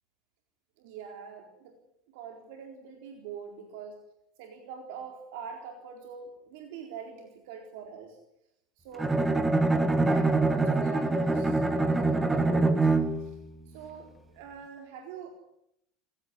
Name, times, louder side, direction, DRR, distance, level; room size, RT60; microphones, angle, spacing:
voice 1, 0.8-1.8 2.1-4.0 4.4-8.2 8.8-9.1 9.9-12.9 13.2-13.4 13.7-15.3, right 6 dB, 70° right, 3 dB, 4.1 m, -43 dB
Bowed string instrument, 9.0-13.4, right 2 dB, 10° right, 2.1 m, -25 dB
29.5 x 16.5 x 9.7 m, 0.80 s
supercardioid pair, 160°, 0 cm